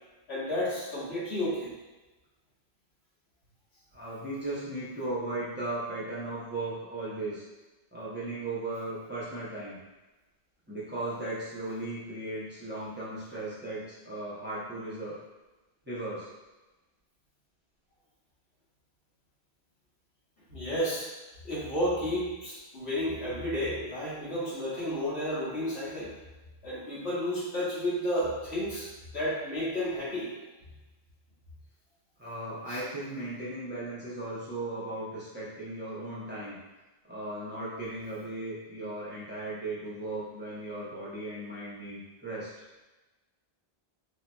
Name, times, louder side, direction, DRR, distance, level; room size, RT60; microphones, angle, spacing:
voice 1, 0.3-1.7 20.5-21.1 21.4-26.1 26.6-28.9 29.1-30.3 32.7-32.8, equal, 85° left, -9 dB, 1.5 m, -31 dB
voice 2, 3.9-7.4 7.9-9.8 10.7-15.2 15.9-16.3 32.2-36.6 37.1-42.5, right 2 dB, 10° right, -9 dB, 0.7 m, -36 dB
3.4 x 2.9 x 2.2 m, 1.1 s
omnidirectional pair, 1.1 m